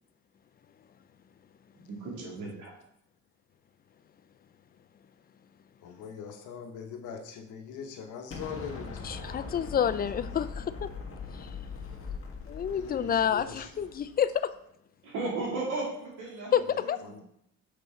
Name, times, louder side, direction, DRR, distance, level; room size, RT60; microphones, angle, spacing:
voice 1, 2.0-2.7 15.0-16.5 16.8-16.9, right 2 dB, 90° right, -3 dB, 2.5 m, -34 dB
voice 2, 5.8-9.1 12.7-13.9 16.6-17.2, left 7 dB, 80° left, 4 dB, 1.0 m, -42 dB
Explosion, 8.3-14.3, left 4 dB, 45° left, 1.5 m, -41 dB
voice 3, 9.0-10.9 11.4-11.5 12.5-14.5 16.5-17.0, left 8 dB, 30° left, 13 dB, 0.4 m, -29 dB
6.6 x 4.4 x 3.7 m, 0.77 s
cardioid pair, 90°, 30 cm